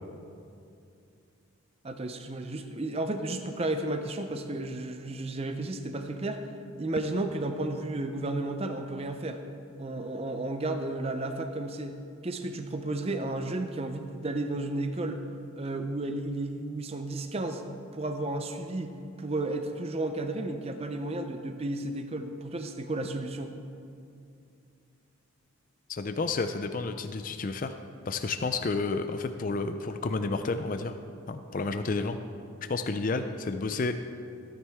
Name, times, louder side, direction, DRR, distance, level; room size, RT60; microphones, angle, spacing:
voice 1, 1.8-6.4 6.8-9.4 9.8-12.0 12.2-15.2 15.6-17.6 17.9-23.5, right 2 dB, 25° right, 7 dB, 0.5 m, -33 dB
voice 2, 25.9-27.7 28.1-31.0 31.3-32.2 32.7-33.9, left 3 dB, 40° left, 8 dB, 0.4 m, -30 dB
15.5 x 9.6 x 3.5 m, 2.5 s
head